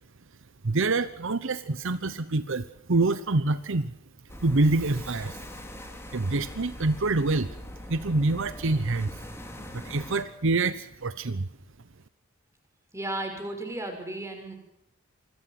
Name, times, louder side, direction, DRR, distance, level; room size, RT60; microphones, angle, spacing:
voice 1, 0.6-3.9 4.4-5.5 6.1-7.5 7.9-9.1 9.7-11.5, right 2 dB, 65° right, 13 dB, 0.9 m, -26 dB
sound 1, 4.3-10.2, left 1 dB, 10° left, 3.5 m, -42 dB
voice 2, 12.9-14.6, right 1 dB, 15° right, 4 dB, 6.3 m, -34 dB
28.0 x 21.5 x 6.0 m, 0.80 s
head